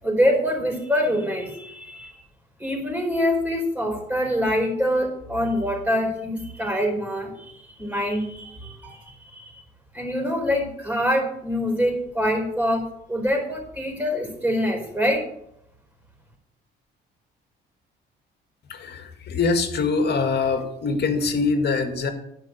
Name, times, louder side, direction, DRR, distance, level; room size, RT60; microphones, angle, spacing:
voice 1, 0.0-2.1 2.6-9.0 9.3-9.5 9.9-15.3, equal, 5° right, 1 dB, 4.6 m, -25 dB
voice 2, 18.7-22.1, left 4 dB, 55° left, 5 dB, 2.0 m, -23 dB
11.5 x 5.2 x 8.0 m, 0.78 s
cardioid pair, 90°, 20 cm